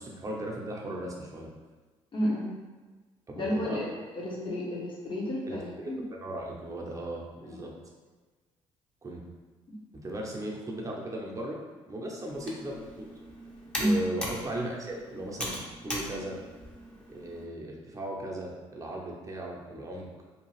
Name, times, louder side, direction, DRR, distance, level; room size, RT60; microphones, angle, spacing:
voice 1, 0.0-1.5 3.3-3.9 5.5-7.7 9.0-9.2 9.9-11.6 11.8-13.1 13.8-16.4 17.1-20.1, right 1 dB, 25° right, -2 dB, 0.7 m, -37 dB
voice 2, 2.1-2.5 3.3-3.9 4.1-6.0 13.8-14.0, equal, 40° left, -4 dB, 1.0 m, -30 dB
Computer keyboard, 12.3-17.4, equal, 10° left, 0.8 m, -40 dB
2.8 x 2.3 x 3.1 m, 1.3 s
supercardioid pair, 65°, 13 cm